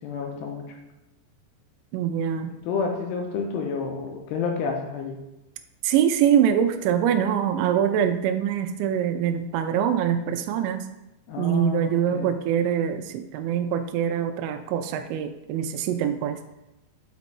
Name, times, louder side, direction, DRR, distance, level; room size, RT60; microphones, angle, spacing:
voice 1, 0.0-0.8 2.6-5.2 11.3-12.3, left 5 dB, 80° left, 2 dB, 2.7 m, -30 dB
voice 2, 1.9-2.5 5.8-10.9 11.4-16.4, right 9 dB, 90° right, 7 dB, 2.9 m, -24 dB
6.9 x 5.2 x 4.1 m, 0.93 s
omnidirectional pair, 5.2 m